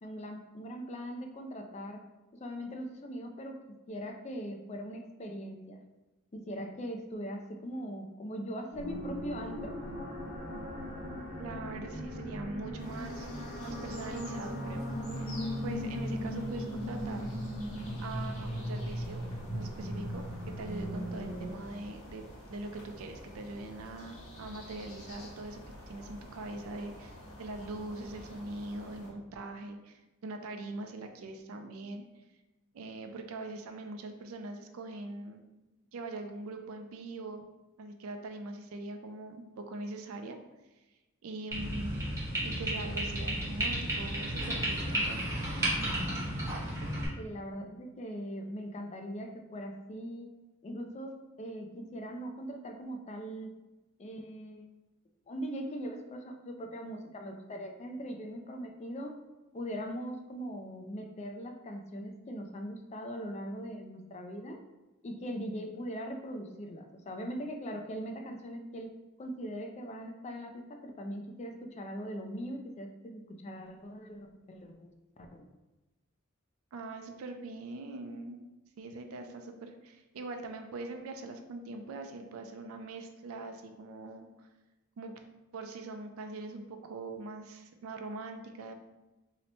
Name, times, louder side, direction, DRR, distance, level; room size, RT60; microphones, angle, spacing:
voice 1, 0.0-2.0 2.3-3.6 3.9-5.8 6.3-9.8 47.2-50.3 50.6-53.6 54.0-54.7 55.3-59.1 59.5-64.6 65.0-75.4, equal, 30° left, 4 dB, 0.3 m, -41 dB
sound 1, 8.7-21.5, equal, 55° left, 1.0 m, -38 dB
voice 2, 11.4-13.3 13.6-14.9 15.2-17.3 18.0-19.2 19.5-22.2 22.5-25.6 25.9-32.0 32.7-35.4 35.9-37.4 37.8-40.4 41.2-42.1 42.4-45.2 76.7-78.4 78.8-84.5 85.0-85.1 85.5-88.7, right 2 dB, 80° right, 5 dB, 0.4 m, -42 dB
sound 2, 12.8-29.1, left 1 dB, 75° left, 1.1 m, -49 dB
sound 3, 41.5-47.1, right 1 dB, 15° right, 0.8 m, -33 dB
2.8 x 2.1 x 4.1 m, 1.1 s
head